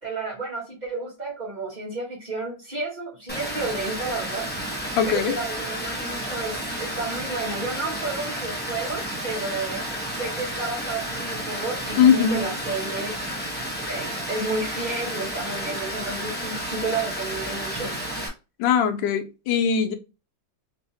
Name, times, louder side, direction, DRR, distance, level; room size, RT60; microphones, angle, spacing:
voice 1, 0.0-4.5 5.0-13.2 13.9-18.0, right 3 dB, 30° right, 1.0 m, -31 dB
Water, 3.3-18.3, equal, 15° left, 0.3 m, -31 dB
voice 2, 5.0-5.4 12.0-12.5 18.6-19.9, left 7 dB, 80° left, 1.3 m, -20 dB
3.4 x 2.7 x 2.7 m
omnidirectional pair, 2.0 m